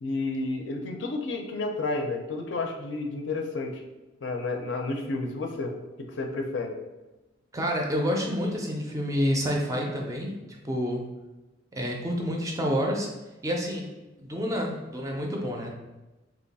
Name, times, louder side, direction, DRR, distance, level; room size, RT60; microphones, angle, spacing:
voice 1, 0.0-3.8 4.2-6.7, left 3 dB, 65° left, 3 dB, 0.5 m, -31 dB
voice 2, 7.5-11.0 11.7-13.1 13.4-13.9 14.2-15.7, equal, 15° right, 0 dB, 0.4 m, -28 dB
2.9 x 2.3 x 4.0 m, 1.1 s
head